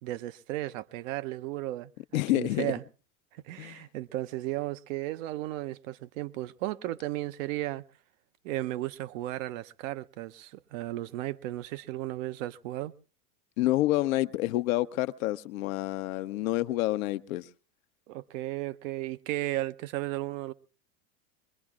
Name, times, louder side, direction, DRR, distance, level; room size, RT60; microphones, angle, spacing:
voice 1, 0.0-2.8 3.4-7.8 8.4-12.9 18.1-20.5, right 16 dB, 55° right, 0.8 m, -35 dB
voice 2, 2.1-2.7 3.6-3.8 13.6-17.5, left 16 dB, 60° left, 0.8 m, -28 dB
23.5 x 21.0 x 2.4 m
hypercardioid pair, 110°, 46 cm